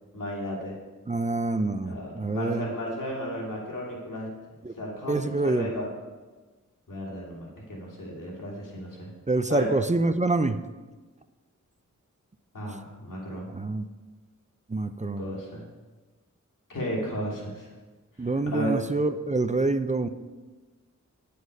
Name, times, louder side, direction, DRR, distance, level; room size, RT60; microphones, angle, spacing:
voice 1, 0.1-0.8 1.8-4.3 4.8-5.9 6.9-9.1 9.5-9.7 12.5-13.5 15.2-15.6 16.7-17.7 18.2-18.7, equal, 85° left, -3 dB, 2.8 m, -34 dB
voice 2, 1.1-2.7 4.6-4.7 5.1-5.7 9.3-10.6 12.7-12.8 13.5-13.9 14.7-15.3 18.2-20.1, right 2 dB, 25° right, 10 dB, 0.5 m, -26 dB
9.5 x 8.5 x 5.3 m, 1.2 s
wide cardioid pair, 60°, 31 cm